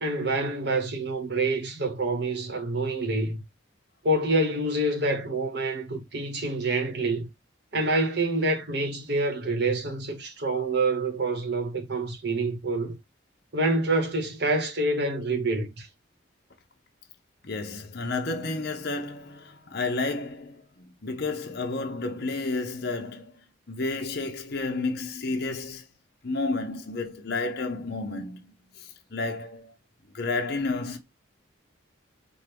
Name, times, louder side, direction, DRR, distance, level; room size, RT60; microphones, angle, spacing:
voice 1, 0.0-3.4 4.0-7.3 7.7-13.0 13.5-15.9, right 2 dB, 55° right, 1.0 m, -27 dB
voice 2, 17.4-25.9 26.2-29.7 30.1-31.0, left 3 dB, 50° left, 0.7 m, -31 dB
4.5 x 2.2 x 3.3 m
head